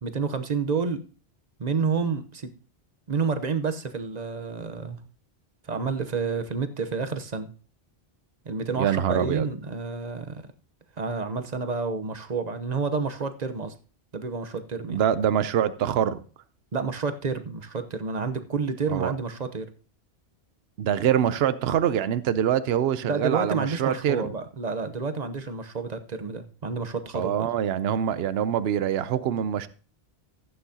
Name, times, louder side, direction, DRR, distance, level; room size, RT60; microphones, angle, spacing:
voice 1, 0.0-1.0 1.6-2.5 3.1-5.0 5.6-7.5 8.4-10.5 11.0-13.7 14.1-15.0 16.7-19.7 23.0-27.5, right 5 dB, 45° right, 0.9 m, -29 dB
voice 2, 8.8-9.5 14.9-16.2 18.9-19.1 20.8-24.3 27.1-29.7, right 9 dB, 75° right, 0.9 m, -24 dB
15.0 x 9.0 x 2.8 m
omnidirectional pair, 1.1 m